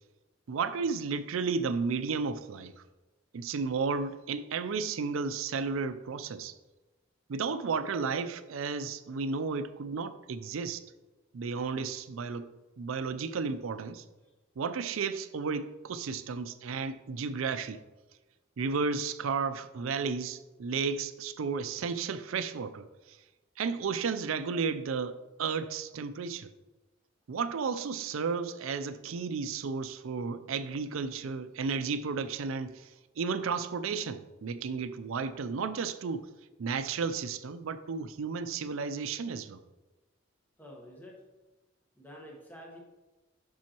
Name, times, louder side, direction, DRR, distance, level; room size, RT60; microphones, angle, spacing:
voice 1, 0.5-2.8 3.3-6.5 7.3-10.8 11.3-12.5 12.8-14.0 14.6-17.8 18.6-23.2 23.6-26.5 27.3-36.3 36.6-39.6, right 5 dB, 80° right, 0.4 m, -33 dB
voice 2, 40.6-41.2 42.0-42.8, equal, 10° left, 1.1 m, -48 dB
7.4 x 6.2 x 2.9 m
head